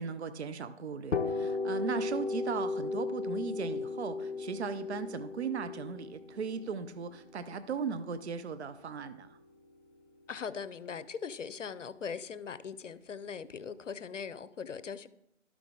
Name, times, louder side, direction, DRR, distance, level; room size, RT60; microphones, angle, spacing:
voice 1, 0.0-9.4, right 6 dB, 60° right, 0.7 m, -37 dB
sound 1, 1.1-8.8, left 3 dB, 65° left, 1.5 m, -36 dB
voice 2, 10.3-15.1, left 6 dB, 80° left, 0.7 m, -40 dB
12.0 x 6.0 x 3.7 m
figure-of-eight pair, 150°, 37 cm